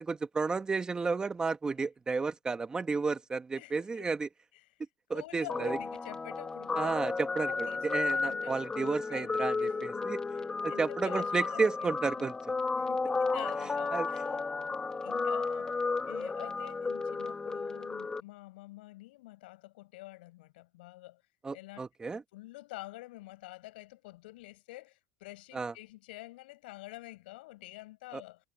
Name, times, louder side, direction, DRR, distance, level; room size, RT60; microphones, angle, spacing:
voice 1, 0.0-4.3 5.1-5.8 6.8-10.2 10.6-12.3 13.9-14.1 21.4-22.2 25.5-25.7 28.1-28.2, right 4 dB, 15° right, 1.6 m, -32 dB
voice 2, 3.5-4.0 4.5-4.8 5.1-9.3 9.6-10.1 10.3-12.3 12.7-14.4 15.0-15.7 16.1-21.2 21.5-21.8 22.3-28.5, left 19 dB, 80° left, 6.8 m, -48 dB
Guitar, 5.5-18.2, left 4 dB, 15° left, 1.7 m, -33 dB
supercardioid pair, 135°, 5 cm